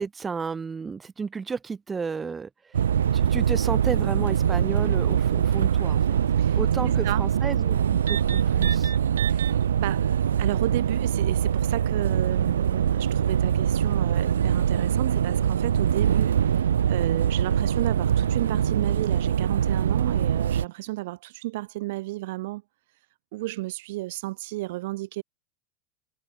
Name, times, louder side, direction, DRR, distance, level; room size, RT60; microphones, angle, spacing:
voice 1, 0.0-6.2 6.6-8.9, right 5 dB, 20° right, 6.6 m, -33 dB
sound 1, 2.7-20.7, right 9 dB, 90° right, 0.9 m, -23 dB
voice 2, 6.9-7.3 9.2-10.1 10.4-22.6 23.3-25.2, right 19 dB, 70° right, 4.9 m, -33 dB
hypercardioid pair, 105°, 0 cm